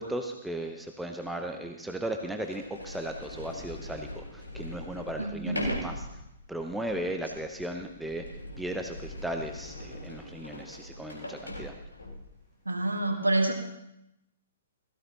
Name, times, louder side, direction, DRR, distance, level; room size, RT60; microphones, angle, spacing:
voice 1, 0.0-6.1 6.5-8.3 8.6-11.7, right 1 dB, 5° right, 4 dB, 0.8 m, -36 dB
Sliding door, 1.0-1.1 1.9-2.0 2.4-12.3, left 1 dB, 80° left, 3.8 m, -41 dB
voice 2, 5.2-5.7 12.7-13.5, right 2 dB, 80° right, 4 dB, 1.5 m, -27 dB
17.0 x 15.0 x 2.9 m, 0.85 s
figure-of-eight pair, 120°, 0 cm